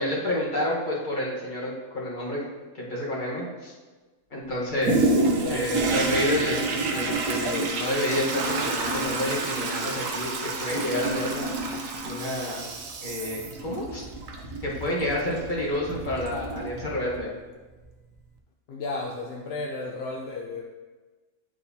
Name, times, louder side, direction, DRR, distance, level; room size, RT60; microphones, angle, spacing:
voice 1, 0.0-2.5 2.7-3.7 4.3-5.1 5.5-11.5 12.0-12.6 13.0-14.0 14.6-17.3, left 1 dB, 35° left, -5 dB, 1.4 m, -29 dB
Toilet flush, 4.8-17.3 17.8-17.9, right 3 dB, 65° right, 1.1 m, -29 dB
voice 2, 5.2-5.7 18.7-20.6, left 3 dB, 60° left, -2 dB, 0.7 m, -33 dB
9.6 x 4.0 x 2.7 m, 1.3 s
omnidirectional pair, 1.6 m